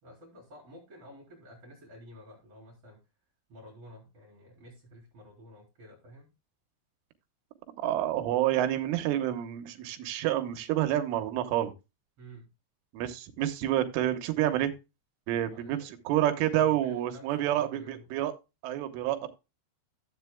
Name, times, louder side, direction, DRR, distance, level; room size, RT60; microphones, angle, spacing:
voice 1, 0.0-3.0 3.5-6.3 12.2-12.5 15.5-15.9 16.3-18.2, equal, 30° right, -2 dB, 4.2 m, -51 dB
voice 2, 7.8-11.7 12.9-14.7 15.3-18.3 18.6-19.3, right 12 dB, 85° right, 8 dB, 3.5 m, -28 dB
13.5 x 8.3 x 2.2 m, 0.26 s
omnidirectional pair, 5.6 m